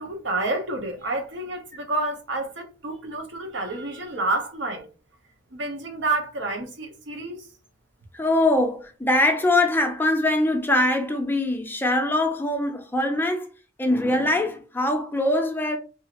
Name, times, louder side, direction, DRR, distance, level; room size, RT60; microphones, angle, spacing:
voice 1, 0.0-4.8 5.5-7.4, right 2 dB, 75° right, 0.8 m, -29 dB
voice 2, 8.1-13.5 13.8-15.8, left 1 dB, 10° left, 0.5 m, -22 dB
2.7 x 2.4 x 2.9 m
head